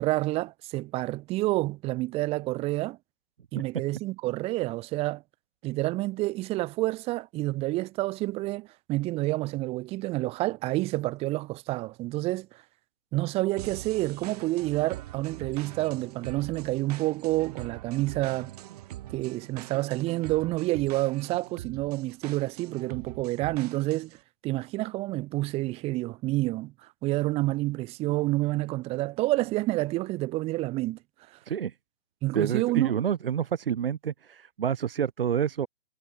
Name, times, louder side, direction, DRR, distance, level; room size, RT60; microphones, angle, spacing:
voice 1, 0.0-3.0 3.5-5.2 5.6-12.6 13.1-18.5 19.1-24.2 24.4-31.0 32.2-32.9, right 19 dB, 15° right, 2.4 m, -29 dB
sound 1, 13.6-24.2, right 14 dB, 30° right, 3.3 m, -43 dB
voice 2, 32.3-35.7, right 8 dB, 45° right, 1.5 m, -28 dB
figure-of-eight pair, 145°, 39 cm